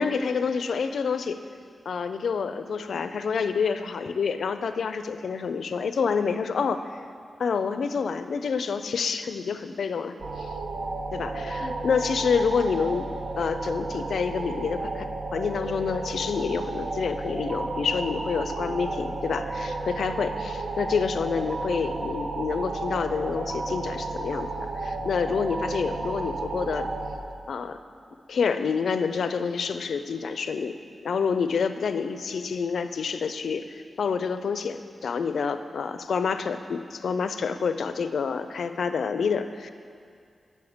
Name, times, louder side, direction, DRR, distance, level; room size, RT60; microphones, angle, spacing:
voice 1, 0.0-1.4 1.9-7.0 7.4-10.5 11.1-13.1 13.4-15.1 15.3-24.5 24.8-26.9 27.5-27.8 28.3-30.8 31.0-39.7, left 5 dB, 85° left, 10 dB, 0.4 m, -28 dB
sound 1, 10.2-27.2, right 3 dB, 65° right, 0.8 m, -32 dB
8.4 x 6.5 x 5.0 m, 2.3 s
wide cardioid pair, 135°, 0 cm